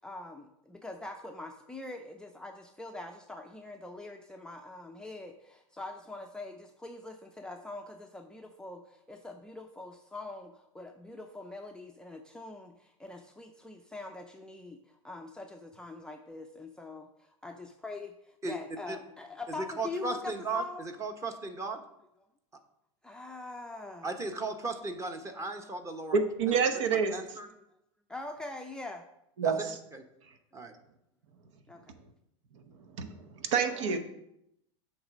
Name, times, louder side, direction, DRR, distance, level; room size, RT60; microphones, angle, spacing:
voice 1, 0.0-20.8 23.0-24.1 27.5-27.6 28.1-29.1 31.7-31.9, left 2 dB, 5° left, 0.5 m, -43 dB
voice 2, 19.6-21.8 24.0-26.2 26.5-26.6 27.1-27.5 29.4-29.5 29.9-30.0 30.5-30.7 33.9-34.0, right 3 dB, 20° right, 1.0 m, -36 dB
voice 3, 26.1-27.1 29.4-29.8 33.0-33.2 33.5-34.0, right 5 dB, 75° right, 1.0 m, -27 dB
8.4 x 3.3 x 6.1 m
hypercardioid pair, 105°, 16 cm